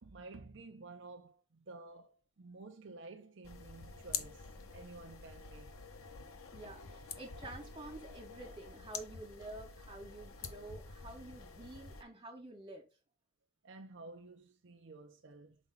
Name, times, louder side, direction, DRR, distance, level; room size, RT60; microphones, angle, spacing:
voice 1, 0.0-5.8 6.6-6.7 13.6-15.6, right 3 dB, 55° right, 0.6 m, -52 dB
sound 1, 3.4-12.0, left 6 dB, 85° left, 1.0 m, -47 dB
voice 2, 6.5-12.8, right 2 dB, 20° right, 2.4 m, -49 dB
6.1 x 4.2 x 3.8 m
head